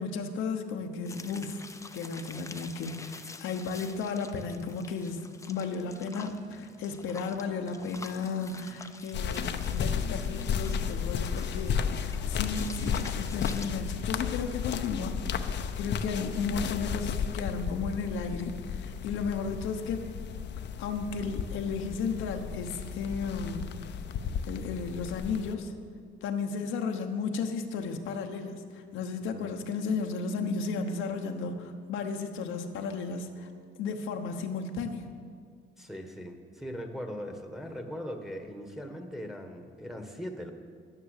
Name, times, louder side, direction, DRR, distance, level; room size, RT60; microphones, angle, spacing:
voice 1, 0.0-1.6 1.9-20.2 20.8-23.8 24.4-25.7 26.2-33.5 33.8-35.1, left 5 dB, 85° left, 4 dB, 1.0 m, -34 dB
sound 1, 1.0-13.7, left 3 dB, 15° left, 0.7 m, -48 dB
Telephone, 5.6-6.9 7.2-8.9 9.5-11.0, left 1 dB, 20° right, 1.9 m, -51 dB
sound 2, 9.1-25.5, left 7 dB, 65° left, 0.7 m, -33 dB
voice 2, 35.8-40.5, equal, ahead, 4 dB, 1.5 m, -40 dB
11.0 x 9.9 x 6.7 m, 2.1 s
cardioid pair, 90°, 20 cm